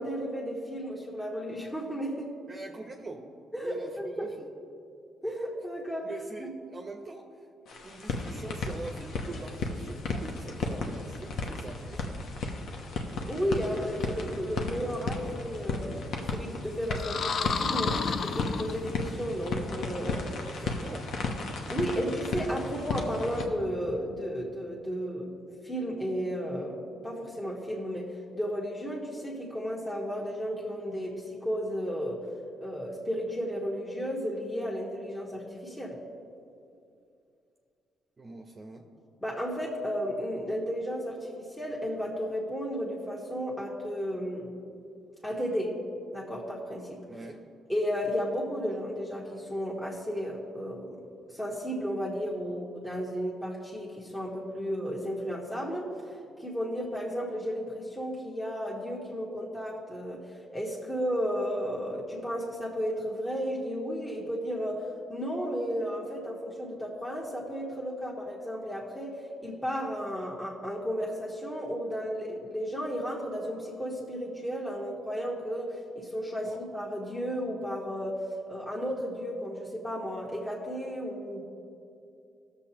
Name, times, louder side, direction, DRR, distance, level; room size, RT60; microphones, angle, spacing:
voice 1, 0.0-2.3 3.5-4.3 5.2-6.1 6.4-6.5 13.2-20.2 21.7-25.3 25.6-32.2 32.6-36.0 39.2-44.6 45.2-45.8 46.1-47.0 47.7-51.0 51.3-55.9 56.4-64.8 65.1-78.2 78.5-81.4, equal, 10° left, -4 dB, 1.4 m, -33 dB
voice 2, 2.5-3.3 3.6-4.5 6.0-7.3 7.8-12.2 20.5-21.1 21.7-22.1 38.2-38.8 47.1-47.4 76.4-76.6, right 3 dB, 30° right, 2 dB, 0.8 m, -43 dB
sound 1, 7.7-23.5, left 3 dB, 70° left, 1.0 m, -35 dB
sound 2, 16.9-19.2, left 5 dB, 55° left, 0.5 m, -31 dB
17.0 x 7.0 x 2.9 m, 2.5 s
cardioid pair, 90°, 0 cm